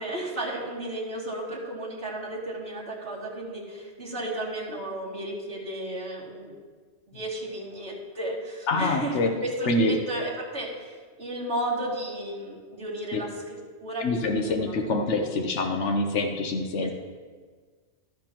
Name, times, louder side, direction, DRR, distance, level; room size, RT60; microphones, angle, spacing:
voice 1, 0.0-6.6 7.1-13.3 13.8-15.5 16.8-16.9, right 1 dB, 65° right, -6 dB, 3.0 m, -34 dB
voice 2, 8.7-9.3 9.7-9.9 13.1-13.2 14.0-16.9, left 2 dB, 85° left, 3 dB, 1.2 m, -25 dB
13.0 x 12.0 x 3.0 m, 1.5 s
omnidirectional pair, 1.2 m